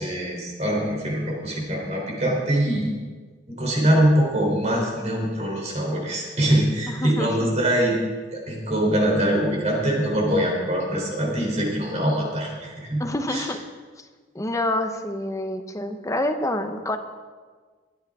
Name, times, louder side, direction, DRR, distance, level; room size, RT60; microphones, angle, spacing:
voice 1, 0.0-2.9 3.6-8.0 8.3-13.0 13.3-13.4, right 1 dB, 40° right, -1 dB, 3.5 m, -23 dB
voice 2, 6.9-7.5 13.0-13.6 14.0-14.1 14.3-17.0, left 1 dB, 20° left, 6 dB, 0.9 m, -27 dB
21.0 x 9.3 x 3.6 m, 1.5 s
head